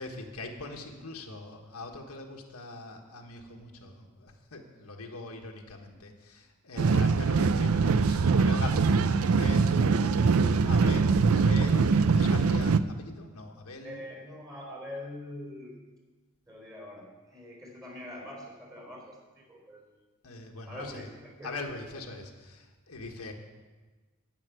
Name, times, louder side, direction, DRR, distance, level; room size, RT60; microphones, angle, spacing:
voice 1, 0.0-9.8 10.6-11.0 11.3-14.0 20.2-21.1 21.4-23.3, left 2 dB, 90° left, 2 dB, 1.4 m, -42 dB
voice 2, 6.7-7.0 9.7-11.3 11.6-11.9 13.8-15.7 16.5-19.8 20.7-21.5, left 1 dB, 15° right, 0 dB, 3.8 m, -44 dB
sound 1, 6.8-12.8, right 4 dB, 75° right, 0.5 m, -23 dB
10.5 x 6.5 x 9.1 m, 1.3 s
head